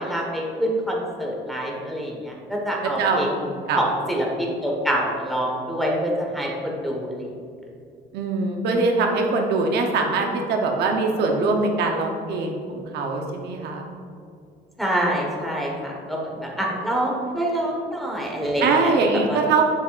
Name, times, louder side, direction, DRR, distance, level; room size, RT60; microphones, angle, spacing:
voice 1, 0.0-3.3 3.8-7.3 14.8-18.9 19.3-19.4, equal, ahead, -2 dB, 1.4 m, -26 dB
voice 2, 2.8-3.8 8.1-13.9 18.6-19.6, right 3 dB, 75° right, 2 dB, 0.9 m, -22 dB
7.6 x 6.7 x 2.5 m, 2.4 s
cardioid pair, 110°, 17 cm